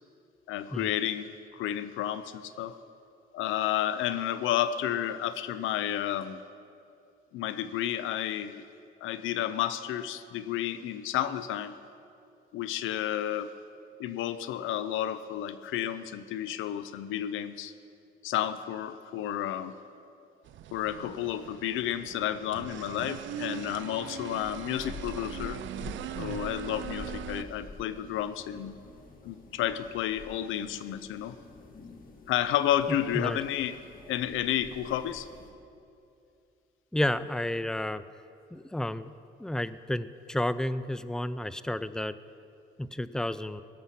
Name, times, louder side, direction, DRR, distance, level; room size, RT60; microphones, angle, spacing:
voice 1, 0.5-1.3 1.5-2.8 3.3-6.4 7.3-8.6 9.0-11.7 12.5-13.5 14.0-17.7 18.2-19.7 20.7-25.6 26.2-28.7 29.2-31.4 32.3-33.8 34.1-35.3, left 11 dB, 85° left, 14 dB, 0.5 m, -31 dB
sound 1, 20.5-27.4, right 10 dB, 70° right, 0.5 m, -40 dB
sound 2, 24.4-35.5, left 3 dB, 45° left, 1.6 m, -47 dB
voice 2, 36.9-38.0 38.5-39.1 39.4-42.2 42.8-43.6, left 1 dB, 5° left, 15 dB, 0.4 m, -31 dB
18.0 x 7.2 x 5.7 m, 2.6 s
cardioid pair, 90°, 20 cm